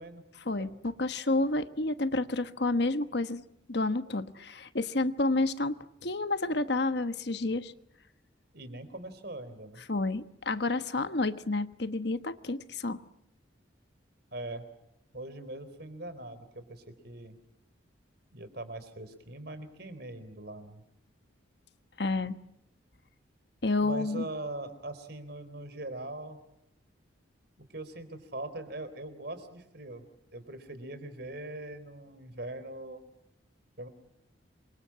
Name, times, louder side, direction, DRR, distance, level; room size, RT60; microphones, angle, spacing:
voice 1, 0.4-3.4 3.7-5.8 6.0-7.7 9.9-13.0 22.0-22.4 23.6-24.3, left 2 dB, 55° left, 11 dB, 1.2 m, -30 dB
voice 2, 8.5-9.8 14.3-14.6 15.1-17.4 18.3-20.8 23.8-26.4 27.7-30.0 30.3-33.0 33.8-33.9, right 2 dB, 55° right, 11 dB, 4.0 m, -41 dB
28.0 x 25.0 x 8.7 m, 0.79 s
head